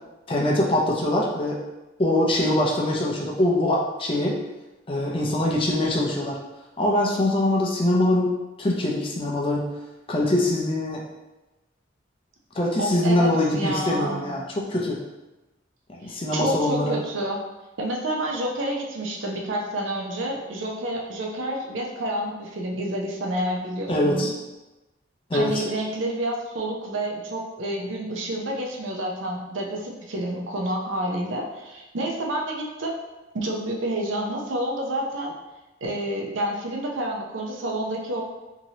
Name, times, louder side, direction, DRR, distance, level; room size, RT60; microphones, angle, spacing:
voice 1, 0.3-1.6 2.0-4.4 4.9-6.4 6.8-8.3 8.6-9.7 10.1-11.0 12.6-15.0 15.9-17.0 23.9-24.3 25.3-25.6, left 1 dB, 25° left, -2 dB, 0.4 m, -23 dB
voice 2, 12.8-14.3 16.0-17.4 17.8-24.3 25.3-33.0 33.3-35.3 35.8-38.2, right 1 dB, 80° right, 0 dB, 0.6 m, -29 dB
3.0 x 2.8 x 2.7 m, 1.1 s
head